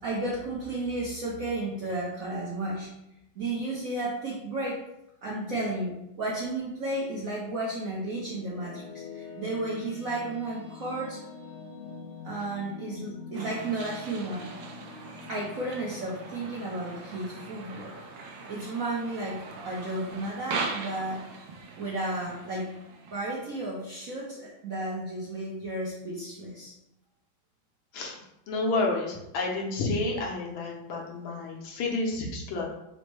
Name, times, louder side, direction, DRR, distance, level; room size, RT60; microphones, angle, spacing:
voice 1, 0.0-2.9 3.3-4.8 5.2-11.2 12.2-14.5 15.3-18.0 18.5-19.4 19.6-21.2 21.8-22.7 23.1-26.7, right 2 dB, 60° right, -5 dB, 0.9 m, -33 dB
sound 1, 7.6-18.8, left 5 dB, 65° left, 1.1 m, -46 dB
sound 2, 13.3-23.8, right 4 dB, 75° right, 1.3 m, -40 dB
voice 2, 28.5-32.7, left 2 dB, 80° left, 0 dB, 1.6 m, -30 dB
4.1 x 2.1 x 4.5 m, 0.86 s
omnidirectional pair, 2.2 m